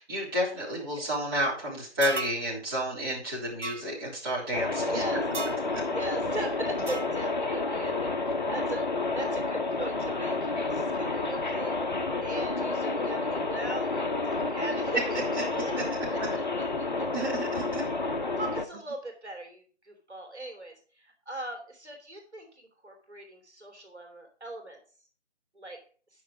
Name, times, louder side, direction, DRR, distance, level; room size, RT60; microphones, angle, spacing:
voice 1, 0.0-5.0 5.7-5.8 17.1-17.8, equal, 20° right, -7 dB, 3.4 m, -31 dB
sound 1, 2.0-2.4 3.6-3.8 5.3-5.6 6.9-7.1, right 4 dB, 90° right, 1.0 m, -35 dB
sound 2, 4.5-18.7, left 3 dB, 40° left, 0.9 m, -30 dB
voice 2, 4.9-5.2 5.9-11.7 12.2-15.8 16.1-17.2 17.8-18.0 18.4-24.8 25.5-25.8, right 2 dB, 70° right, 3 dB, 3.0 m, -39 dB
10.0 x 6.4 x 4.9 m, 0.41 s
figure-of-eight pair, 160°, 35 cm